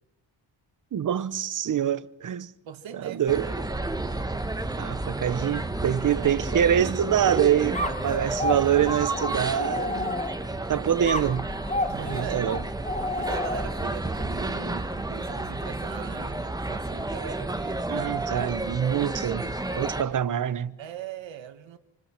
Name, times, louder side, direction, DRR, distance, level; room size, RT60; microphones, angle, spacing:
voice 1, 0.9-2.5 2.9-3.5 4.8-10.2 10.7-11.5 12.1-12.6 17.9-20.8, right 10 dB, 45° right, 0.7 m, -25 dB
voice 2, 2.6-3.6 6.1-6.7 7.9-8.7 11.9-12.5 13.1-17.8 18.5-18.6 19.8-20.2 20.8-21.8, right 9 dB, 80° right, 1.5 m, -40 dB
sound 1, 3.3-20.0, right 2 dB, 10° right, 1.1 m, -31 dB
sound 2, 7.7-10.6 11.0-13.9, left 2 dB, 15° left, 1.4 m, -31 dB
27.5 x 26.0 x 4.4 m
wide cardioid pair, 165°, 45 cm